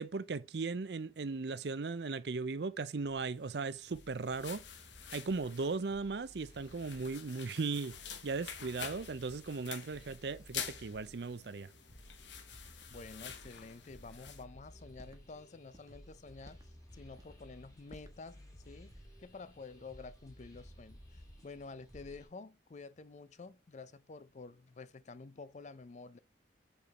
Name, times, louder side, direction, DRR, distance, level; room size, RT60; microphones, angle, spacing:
voice 1, 0.0-4.6 5.1-7.9 8.2-11.7, right 4 dB, 65° right, 0.5 m, -37 dB
sound 1, 3.1-22.3, equal, 20° left, 1.9 m, -57 dB
sound 2, 3.7-14.4, left 8 dB, 85° left, 1.1 m, -48 dB
sound 3, 12.6-12.9 13.4-13.7 14.2-14.5 14.9-15.2 15.7-16.0 16.4-16.8 17.1-17.4 17.9-18.2, equal, 20° right, 1.2 m, -58 dB
voice 2, 12.9-16.6 16.9-18.9 19.2-26.2, left 3 dB, 40° left, 0.5 m, -50 dB
7.0 x 4.6 x 4.1 m
head